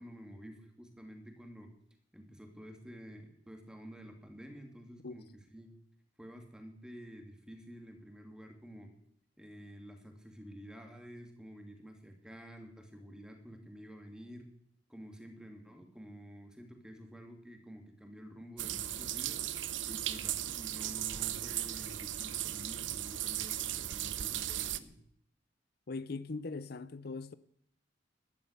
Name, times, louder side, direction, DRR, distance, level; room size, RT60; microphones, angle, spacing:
voice 1, 0.0-1.7 2.1-5.3 5.5-5.7 6.2-8.9 9.4-14.5 14.9-19.5 19.8-24.9, equal, 5° right, 2.7 m, -50 dB
sound 1, 18.6-24.8, right 12 dB, 75° right, 0.8 m, -37 dB
voice 2, 25.9-27.3, left 3 dB, 55° left, 0.6 m, -40 dB
13.5 x 12.5 x 8.2 m
head